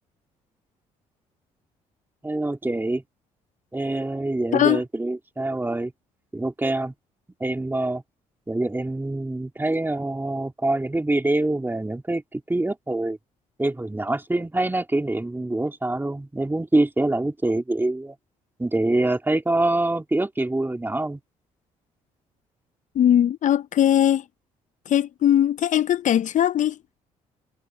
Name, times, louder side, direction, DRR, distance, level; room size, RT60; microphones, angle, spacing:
voice 1, 2.2-3.0 3.7-5.9 6.3-6.9 7.4-8.0 8.5-13.2 13.6-18.1 18.6-21.2, right 2 dB, 15° right, 2.7 m, -25 dB
voice 2, 22.9-24.2 24.9-26.8, left 10 dB, 55° left, 0.7 m, -20 dB
supercardioid pair, 60°, 15 cm